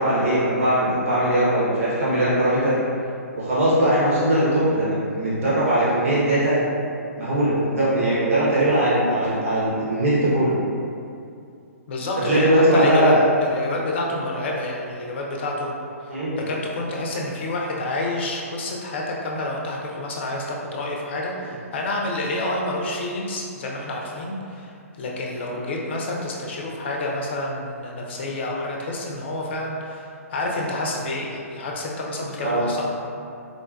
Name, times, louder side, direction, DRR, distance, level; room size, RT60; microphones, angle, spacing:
voice 1, 0.0-2.8 3.3-6.6 7.2-10.5 12.3-13.2 16.1-16.4 25.5-25.6 32.4-32.6, right 1 dB, 60° right, -9 dB, 1.0 m, -20 dB
voice 2, 11.9-13.1 13.4-15.7 16.4-32.9, left 2 dB, 45° left, -1 dB, 0.5 m, -29 dB
3.7 x 2.2 x 2.5 m, 2.5 s
figure-of-eight pair, 125°, 8 cm